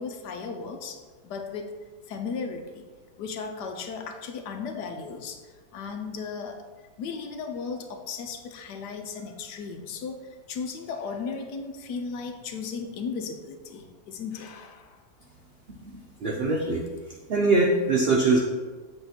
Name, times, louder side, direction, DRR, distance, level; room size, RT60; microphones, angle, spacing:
voice 1, 0.0-1.7 2.1-2.9 3.2-6.6 7.0-15.0, left 5 dB, 85° left, 5 dB, 1.4 m, -36 dB
voice 2, 15.8-16.8 17.3-18.4, right 3 dB, 55° right, 1 dB, 0.7 m, -23 dB
8.1 x 3.5 x 5.8 m, 1.4 s
omnidirectional pair, 1.8 m